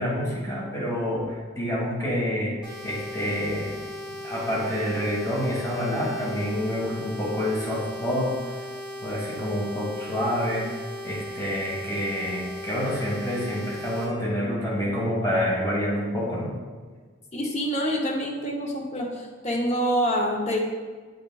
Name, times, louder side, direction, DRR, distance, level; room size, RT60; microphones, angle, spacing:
voice 1, 0.0-2.6 2.8-3.7 4.2-8.6 9.0-10.6 11.0-16.5, equal, 15° left, -5 dB, 1.5 m, -27 dB
sound 1, 2.6-14.0, left 1 dB, 5° right, 1.8 m, -37 dB
voice 2, 17.3-20.6, equal, 35° left, 0 dB, 0.8 m, -26 dB
7.2 x 5.9 x 2.3 m, 1.5 s
head